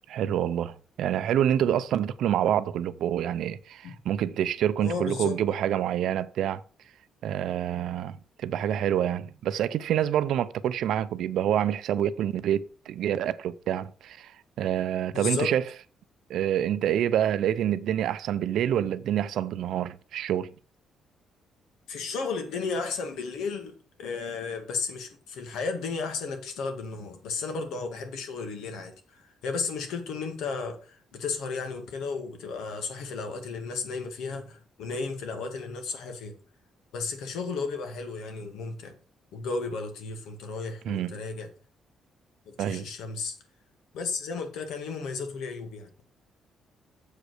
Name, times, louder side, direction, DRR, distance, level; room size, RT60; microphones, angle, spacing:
voice 1, 0.1-6.6 7.2-14.3 14.6-15.6 16.3-20.5 40.9-41.2 42.6-42.9, right 10 dB, 75° right, 0.5 m, -27 dB
voice 2, 4.8-5.4 15.1-15.5 21.9-28.9 29.2-36.3 36.9-38.9 39.3-41.5 42.5-43.4 43.9-46.0, left 4 dB, 90° left, 2.0 m, -34 dB
7.4 x 5.1 x 6.3 m
cardioid pair, 140°, 0 cm